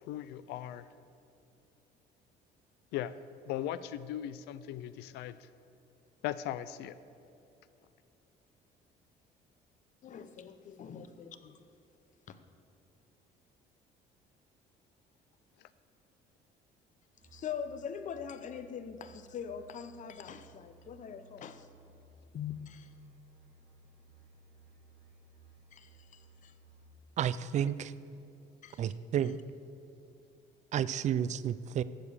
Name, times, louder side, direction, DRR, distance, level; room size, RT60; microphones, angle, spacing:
voice 1, 0.0-0.8 2.9-3.1 3.5-5.3 6.2-6.9, left 12 dB, 85° left, 15 dB, 0.4 m, -38 dB
voice 2, 10.0-11.6 12.3-12.4 17.3-21.7 22.3-22.9 25.7-25.9 26.4-26.5 28.6-28.9, left 7 dB, 50° left, 11 dB, 0.7 m, -42 dB
Musical instrument, 17.2-27.1, right 3 dB, 70° right, 2.2 m, -60 dB
voice 3, 27.2-27.9 28.8-29.4 30.7-31.8, right 9 dB, 45° right, 16 dB, 0.4 m, -31 dB
14.5 x 5.0 x 6.6 m, 2.7 s
cardioid pair, 110°, 17 cm